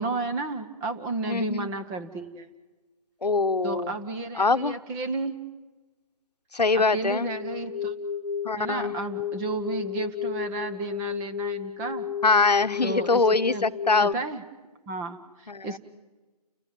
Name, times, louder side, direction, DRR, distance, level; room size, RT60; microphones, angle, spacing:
voice 1, 0.0-2.5 3.6-5.4 6.7-8.0 8.6-12.1 12.8-13.6 14.0-14.4 14.9-15.8, right 3 dB, 15° right, 7 dB, 1.2 m, -32 dB
voice 2, 1.3-1.7 3.2-3.9 4.4-4.8 6.5-7.3 8.4-8.9 12.2-14.2 15.5-15.8, left 3 dB, 90° left, 11 dB, 1.1 m, -23 dB
sound 1, 7.1-14.1, left 8 dB, 40° left, 1.1 m, -33 dB
30.0 x 16.0 x 9.1 m, 1.2 s
figure-of-eight pair, 150°, 20 cm